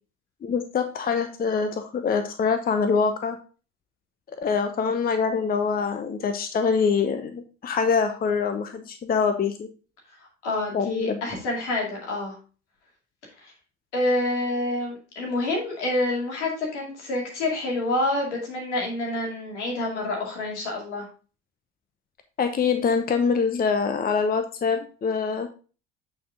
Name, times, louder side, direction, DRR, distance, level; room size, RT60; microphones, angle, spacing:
voice 1, 0.4-3.4 4.4-9.7 10.7-11.2 22.4-25.5, left 5 dB, 25° left, 8 dB, 0.8 m, -24 dB
voice 2, 10.4-12.4 13.4-13.5 13.9-21.1, left 2 dB, 75° left, -1 dB, 2.3 m, -27 dB
8.5 x 4.5 x 3.5 m, 0.36 s
figure-of-eight pair, 55°, 35 cm